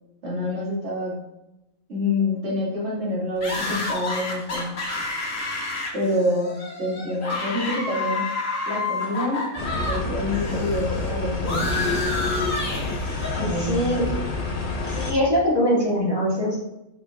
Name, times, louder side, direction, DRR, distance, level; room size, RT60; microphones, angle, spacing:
voice 1, 0.2-1.2 1.9-4.8 5.9-8.3 8.7-9.5 9.9-12.0 13.4-14.1, left 1 dB, 55° right, -5 dB, 2.4 m, -27 dB
sound 1, 3.4-10.0 10.3-13.5, left 3 dB, 80° left, 2.0 m, -30 dB
sound 2, 9.6-15.1, left 3 dB, 30° left, 1.3 m, -28 dB
voice 2, 13.4-14.1 14.9-16.6, equal, 20° right, -6 dB, 2.3 m, -22 dB
7.8 x 4.8 x 3.6 m, 0.92 s
omnidirectional pair, 1.3 m